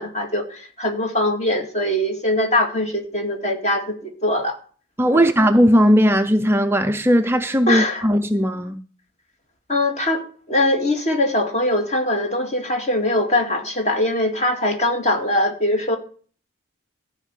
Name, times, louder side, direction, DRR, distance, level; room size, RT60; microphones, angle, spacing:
voice 1, 0.0-4.6 5.1-5.3 7.7-8.0 9.7-10.2 10.5-16.0, left 1 dB, 35° left, 2.2 m, -22 dB
voice 2, 5.0-8.8, equal, 10° right, 0.4 m, -17 dB
14.0 x 5.1 x 8.1 m
head